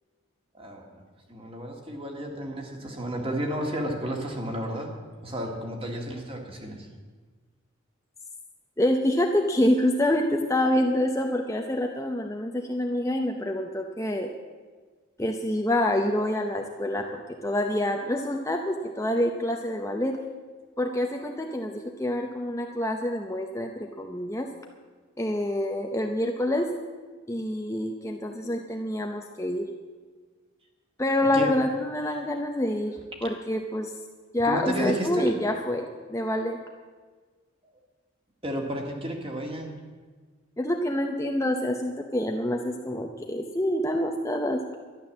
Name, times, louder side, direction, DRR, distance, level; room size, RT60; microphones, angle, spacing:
voice 1, 0.5-1.0 1.3-4.9 5.2-6.9 31.3-31.5 34.4-35.3 38.4-39.7, right 1 dB, 25° right, 1 dB, 2.0 m, -32 dB
voice 2, 8.8-14.3 15.2-20.2 20.8-24.5 25.2-26.7 27.3-29.7 31.0-33.9 34.3-36.6 40.6-44.6, left 1 dB, 15° left, 2 dB, 0.7 m, -27 dB
12.0 x 11.0 x 7.3 m, 1.4 s
head